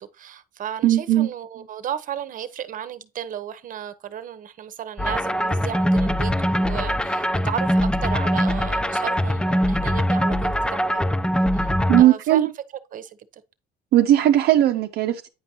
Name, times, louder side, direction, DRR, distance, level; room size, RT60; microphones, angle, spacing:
voice 1, 0.0-11.0 11.5-12.5 12.9-13.4, right 9 dB, 50° right, 1.0 m, -34 dB
voice 2, 0.8-1.3 11.9-12.5 13.9-15.3, right 13 dB, 70° right, 0.7 m, -17 dB
sound 1, 5.0-12.0, equal, 5° left, 0.5 m, -22 dB
9.5 x 5.2 x 2.9 m
cardioid pair, 110°, 17 cm